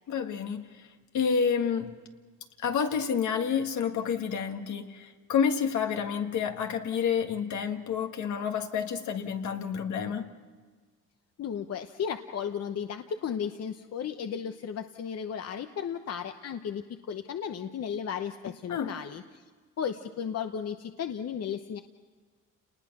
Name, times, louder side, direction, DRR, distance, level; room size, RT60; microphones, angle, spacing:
voice 1, 0.1-0.7 1.1-1.9 2.6-10.3 18.7-18.9, left 7 dB, 75° left, 5 dB, 1.8 m, -29 dB
voice 2, 11.4-19.4 19.8-21.8, left 7 dB, 55° left, 7 dB, 0.9 m, -34 dB
29.5 x 19.5 x 6.1 m, 1.5 s
cardioid pair, 90°, 30 cm